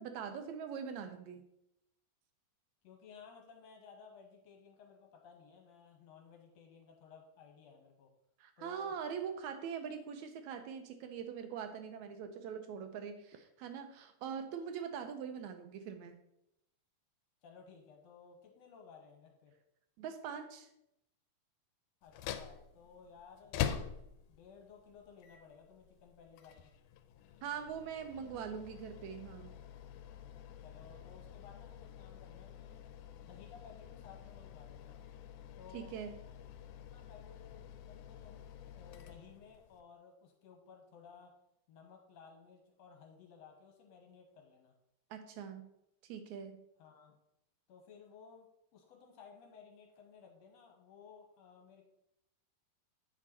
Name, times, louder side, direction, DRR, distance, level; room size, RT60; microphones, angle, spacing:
voice 1, 0.0-1.5 8.4-16.2 20.0-20.7 27.4-29.6 35.7-36.1 45.1-45.7 46.0-46.6, right 7 dB, 75° right, 7 dB, 1.8 m, -43 dB
voice 2, 2.8-8.1 8.6-8.9 17.4-19.6 22.0-23.6 24.3-26.7 30.6-32.8 33.2-35.0 35.6-36.0 36.9-41.3 41.7-44.8 46.8-47.2 47.7-48.5 48.7-51.9, left 6 dB, 70° left, 2 dB, 1.9 m, -57 dB
sound 1, 22.0-39.8, left 9 dB, 90° left, 2.0 m, -46 dB
8.3 x 5.1 x 4.3 m, 0.82 s
omnidirectional pair, 3.5 m